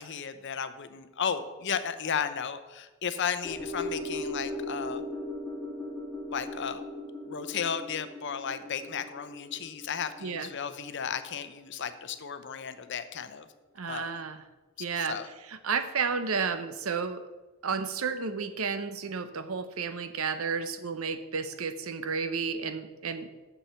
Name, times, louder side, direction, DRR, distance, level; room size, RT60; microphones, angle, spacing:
voice 1, 0.0-5.0 6.3-6.8 7.2-13.5 13.9-14.1 15.0-15.3, left 7 dB, 55° left, 11 dB, 0.7 m, -34 dB
sound 1, 3.4-11.9 12.2-12.3, left 1 dB, ahead, 2.0 m, -38 dB
voice 2, 13.7-14.4 14.8-15.2 15.5-17.2 17.6-23.3, right 5 dB, 70° right, 10 dB, 0.8 m, -32 dB
7.3 x 7.0 x 6.9 m, 1.1 s
head